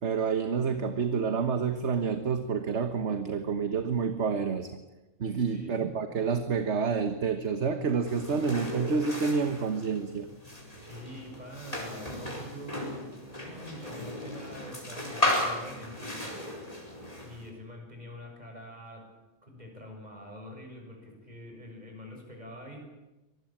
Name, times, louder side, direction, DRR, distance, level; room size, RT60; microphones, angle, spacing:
voice 1, 0.0-4.7 5.2-10.3, right 5 dB, 55° right, 9 dB, 1.6 m, -28 dB
voice 2, 5.3-5.9 10.8-16.7 17.2-19.1 19.4-22.8, equal, 30° right, 2 dB, 7.2 m, -45 dB
sound 1, 8.0-17.5, left 1 dB, 25° left, 5.0 m, -35 dB
25.0 x 19.5 x 8.9 m, 1.0 s
omnidirectional pair, 1.4 m